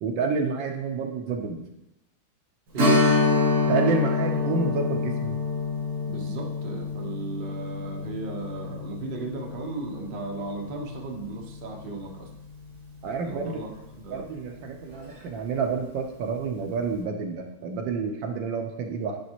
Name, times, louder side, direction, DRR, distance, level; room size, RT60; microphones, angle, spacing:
voice 1, 0.0-1.6 3.7-5.4 13.0-13.6 14.1-19.2, right 5 dB, 70° right, 4 dB, 1.4 m, -29 dB
Strum, 2.8-12.0 12.3-12.4 14.9-15.1 15.6-15.7, left 3 dB, 90° right, 2.7 m, -27 dB
voice 2, 6.0-12.3 13.2-13.7 14.0-14.2, right 3 dB, 45° right, 0 dB, 0.7 m, -36 dB
10.0 x 3.5 x 2.9 m, 0.93 s
omnidirectional pair, 2.2 m